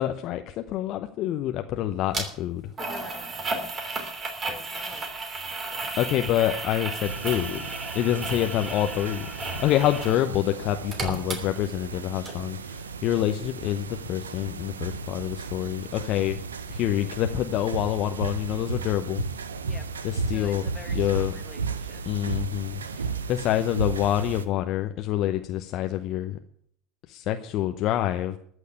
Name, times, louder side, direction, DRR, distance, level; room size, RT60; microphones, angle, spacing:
voice 1, 0.0-2.7 6.0-7.7 7.9-16.4 16.7-19.3 20.0-20.6 20.9-21.3 22.1-26.4 27.1-28.4, left 12 dB, 55° left, 7 dB, 0.8 m, -27 dB
sound 1, 2.1-2.3 2.8-10.2 10.5-12.0 12.3-12.4, right 3 dB, 35° right, 3.1 m, -33 dB
voice 2, 2.8-3.7 4.4-5.1 8.1-8.6 9.9-10.1 19.6-19.9 20.3-22.0, left 5 dB, 30° left, 6 dB, 2.1 m, -46 dB
sound 2, 7.0-24.5, right 5 dB, 85° right, 0.8 m, -35 dB
13.5 x 6.5 x 10.0 m, 0.64 s
hypercardioid pair, 75°, 0 cm